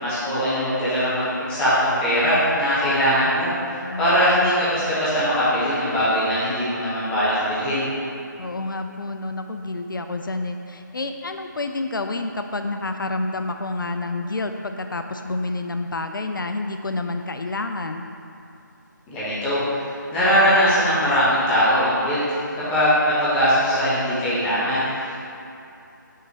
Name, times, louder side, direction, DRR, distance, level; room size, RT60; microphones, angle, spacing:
voice 1, 0.0-3.5 4.0-7.8 19.1-22.2 22.7-25.2, equal, 10° left, -12 dB, 1.1 m, -21 dB
voice 2, 3.8-4.2 8.4-18.0, left 2 dB, 80° left, 6 dB, 0.4 m, -29 dB
5.6 x 4.0 x 4.8 m, 2.7 s
figure-of-eight pair, 155°, 11 cm